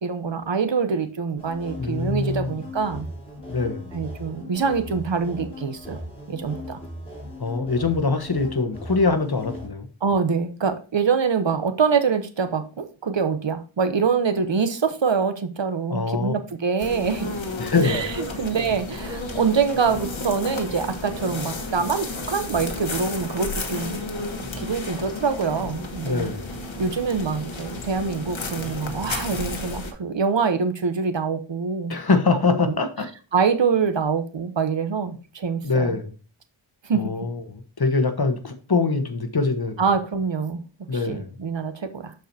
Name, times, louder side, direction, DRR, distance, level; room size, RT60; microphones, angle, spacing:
voice 1, 0.0-3.1 3.9-6.0 6.3-6.8 10.0-17.3 17.8-24.0 24.6-26.3 26.8-31.9 32.3-32.8 33.3-36.0 36.8-37.1 39.8-40.6 41.1-42.1, right 5 dB, 65° right, 10 dB, 1.0 m, -25 dB
sound 1, 1.4-9.7, left 1 dB, 10° left, 4.5 m, -38 dB
voice 2, 1.8-2.6 3.5-3.9 7.4-9.9 15.9-16.3 17.6-18.1 26.0-26.5 31.9-33.1 35.6-36.1 36.9-39.8 40.9-41.3, left 4 dB, 50° left, 8 dB, 1.3 m, -23 dB
sound 2, 16.8-29.9, left 2 dB, 80° left, 1.3 m, -32 dB
12.5 x 4.6 x 2.7 m, 0.35 s
wide cardioid pair, 70°, 47 cm